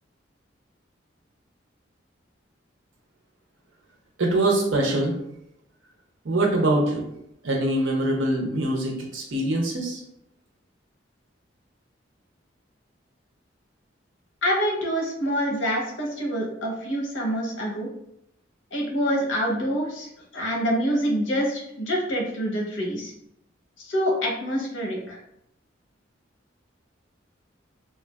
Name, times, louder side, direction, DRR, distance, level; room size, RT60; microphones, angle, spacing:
voice 1, 4.2-5.1 6.2-7.0 7.4-10.0, right 1 dB, 85° right, -1 dB, 0.7 m, -23 dB
voice 2, 14.4-17.9 18.7-23.1 23.8-25.2, equal, 80° left, -1 dB, 0.8 m, -26 dB
3.2 x 2.3 x 2.2 m, 0.78 s
head